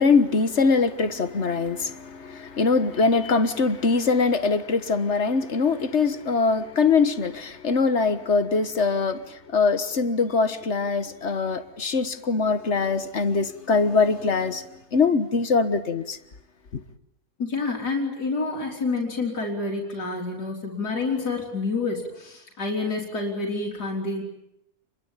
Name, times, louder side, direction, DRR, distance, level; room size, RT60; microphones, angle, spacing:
voice 1, 0.0-14.7 14.9-16.2 16.7-16.8, left 4 dB, 45° left, 1.6 m, -22 dB
voice 2, 17.4-24.2, left 3 dB, 85° left, 4.4 m, -28 dB
29.5 x 22.5 x 9.0 m
omnidirectional pair, 1.7 m